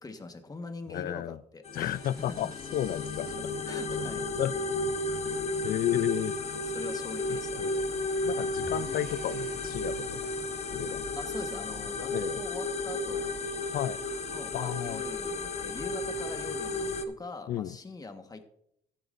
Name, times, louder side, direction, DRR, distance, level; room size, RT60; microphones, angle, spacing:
voice 1, 0.0-2.4 3.6-4.2 5.2-5.4 6.5-7.7 11.2-13.3 14.3-18.5, left 3 dB, 20° left, 7 dB, 1.4 m, -43 dB
voice 2, 0.9-1.4 1.7-3.3 3.9-4.9 5.6-6.4 7.6-7.8 8.2-10.3 10.7-11.0 12.1-12.4 13.7-14.0 14.5-15.0 17.5-17.8, left 12 dB, 55° left, 18 dB, 0.4 m, -33 dB
sound 1, 1.6-17.0, left 2 dB, 40° left, 1.1 m, -33 dB
sound 2, 1.9-10.0, right 4 dB, 55° right, 1.8 m, -53 dB
14.5 x 9.0 x 2.6 m, 0.73 s
cardioid pair, 95°, 17 cm